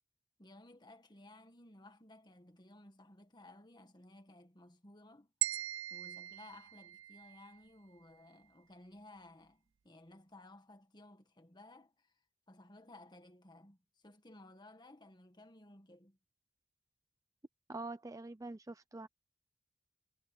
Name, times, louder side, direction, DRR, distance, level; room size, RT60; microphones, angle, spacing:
voice 1, 0.4-5.3 5.9-12.1 12.5-13.8 14.0-16.2, left 1 dB, 25° left, 1.8 m, -57 dB
sound 1, 5.4-7.6, right 16 dB, 90° right, 0.4 m, -40 dB
voice 2, 17.7-19.1, right 2 dB, 15° right, 0.5 m, -45 dB
head